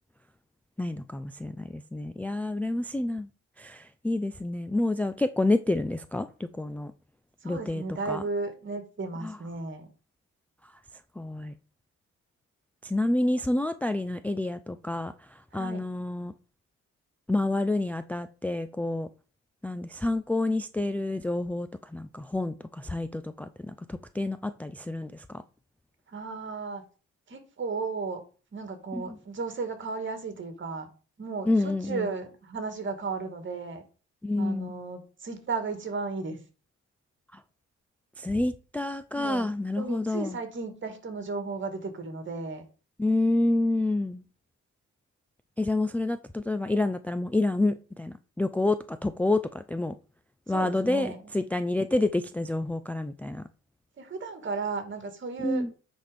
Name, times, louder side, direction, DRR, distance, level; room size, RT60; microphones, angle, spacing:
voice 1, 0.8-3.3 3.6-6.9 7.4-8.2 9.2-9.4 10.6-10.7 11.2-11.5 12.8-16.3 17.3-19.1 19.6-25.4 29.1-29.2 31.5-32.1 34.2-34.8 37.3-37.4 38.2-40.4 43.0-44.2 45.6-49.9 50.5-53.4 55.4-55.7, left 2 dB, 5° left, 0.4 m, -28 dB
voice 2, 7.4-9.9 15.5-15.8 26.1-26.8 27.3-28.2 28.5-30.9 31.2-33.8 34.4-36.4 39.1-39.5 39.8-42.6 50.5-51.2 54.0-55.6, right 4 dB, 40° right, 2.1 m, -34 dB
9.3 x 4.3 x 5.1 m
cardioid pair, 90°, 30 cm